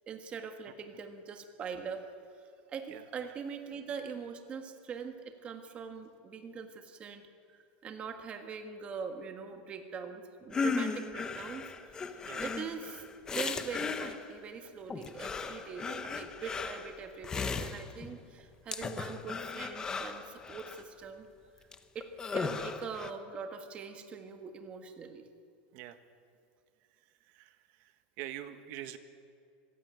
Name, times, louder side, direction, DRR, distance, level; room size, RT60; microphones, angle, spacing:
voice 1, 0.1-2.1 2.7-21.3 22.0-25.3, right 6 dB, 20° right, 6 dB, 1.6 m, -43 dB
sound 1, 10.5-14.4 14.9-18.2 18.7-20.8 21.7-21.8 22.0-23.1, left 4 dB, 15° left, 0.9 m, -36 dB
voice 2, 27.3-27.9 28.2-29.0, right 13 dB, 45° right, 10 dB, 1.4 m, -44 dB
24.5 x 16.0 x 9.1 m, 2.4 s
supercardioid pair, 170°, 5 cm